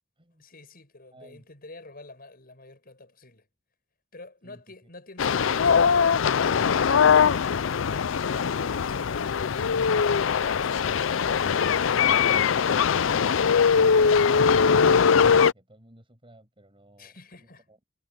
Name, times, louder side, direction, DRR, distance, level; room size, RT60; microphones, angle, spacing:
voice 1, 0.4-3.5 4.1-6.9 8.3-9.8 17.0-17.7, left 2 dB, 50° left, 7.3 m, -48 dB
voice 2, 1.1-1.5 4.4-4.6 12.7-17.8, right 1 dB, 25° right, 6.9 m, -54 dB
sound 1, 5.2-15.5, left 6 dB, 75° left, 0.5 m, -21 dB
head